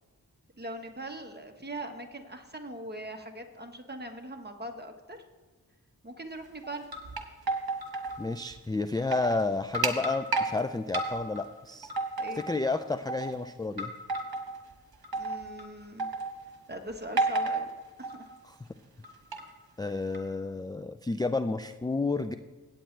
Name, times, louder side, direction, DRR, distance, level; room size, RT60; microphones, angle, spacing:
voice 1, 0.6-5.2 6.0-6.9 12.2-12.4 15.1-16.1 16.7-17.7 18.0-18.3 19.9-20.0, right 1 dB, 25° right, 4 dB, 1.3 m, -41 dB
sound 1, 6.6-8.2 8.5-8.6 9.0-9.4 9.7-10.5 10.9-11.4 11.8-12.7 13.1-13.3 13.8-14.5 15.0-15.6 16.0-16.4 17.2-17.7 18.0-18.4 19.0-19.4 20.1-20.2, right 3 dB, 70° right, 1.4 m, -31 dB
voice 2, 8.2-11.9 12.4-13.9 18.5-18.6 19.8-22.3, left 3 dB, 10° left, 11 dB, 0.3 m, -31 dB
16.5 x 8.7 x 3.3 m, 1.3 s
wide cardioid pair, 55°, 38 cm